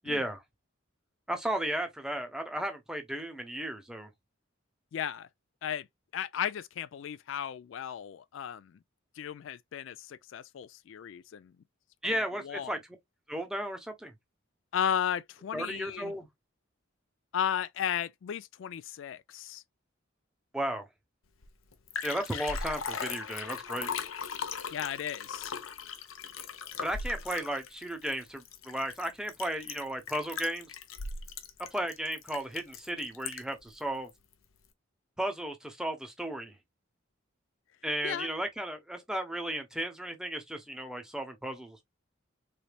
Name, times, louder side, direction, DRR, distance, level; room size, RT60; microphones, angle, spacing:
voice 1, 0.0-0.4 1.3-4.1 12.0-12.8 13.3-14.1 15.5-16.3 20.5-20.9 22.0-23.9 26.8-30.7 31.7-34.1 35.2-36.5 37.8-41.8, right 1 dB, 5° right, 0.7 m, -34 dB
voice 2, 4.9-5.3 5.6-5.9 6.1-8.8 9.2-11.5 12.0-12.8 14.7-16.1 17.3-19.6 24.7-25.5 38.0-38.3, left 9 dB, 65° left, 0.3 m, -35 dB
Liquid, 21.4-21.5 21.7-33.6 34.1-34.2, left 6 dB, 85° left, 0.7 m, -39 dB
4.0 x 3.3 x 2.2 m
head